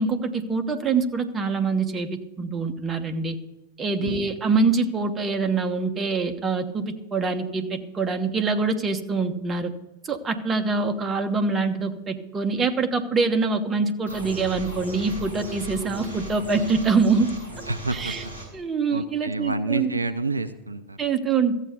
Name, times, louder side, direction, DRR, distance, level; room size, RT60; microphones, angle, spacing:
voice 1, 0.0-3.4 3.8-9.7 10.0-17.3 17.9-18.2 18.5-19.9 21.0-21.5, right 4 dB, 20° right, 6 dB, 1.1 m, -24 dB
sound 1, 14.1-18.5, equal, 75° left, 5.6 m, -38 dB
voice 2, 17.7-18.3 18.9-21.0, right 2 dB, 80° right, 9 dB, 0.7 m, -29 dB
14.0 x 8.3 x 6.7 m, 1.0 s
figure-of-eight pair, 90°, 0 cm